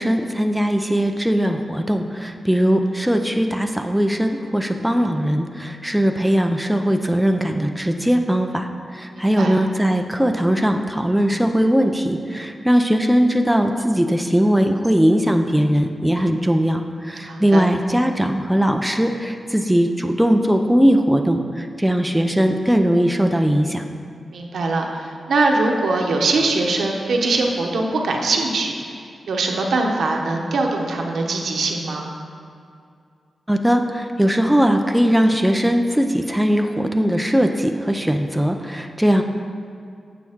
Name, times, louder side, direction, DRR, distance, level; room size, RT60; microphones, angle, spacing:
voice 1, 0.0-8.7 9.0-23.8 33.5-39.2, equal, 5° right, 4 dB, 0.5 m, -19 dB
voice 2, 9.1-9.6 17.2-17.7 24.3-32.1, right 3 dB, 85° right, 1 dB, 1.0 m, -22 dB
9.1 x 6.9 x 3.6 m, 2.3 s
cardioid pair, 85°, 0 cm